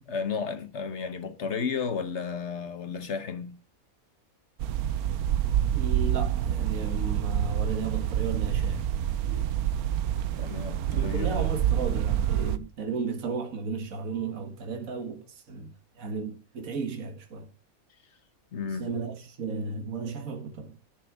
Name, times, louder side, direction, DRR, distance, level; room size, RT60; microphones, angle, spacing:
voice 1, 0.1-3.6 10.3-11.5 18.5-18.9, left 5 dB, 55° left, 1.2 m, -33 dB
sound 1, 4.6-12.6, right 10 dB, 85° right, 1.2 m, -27 dB
voice 2, 5.6-8.9 9.3-9.5 10.9-17.5 18.8-20.8, right 4 dB, 65° right, 1.9 m, -34 dB
11.0 x 6.1 x 6.0 m
omnidirectional pair, 1.5 m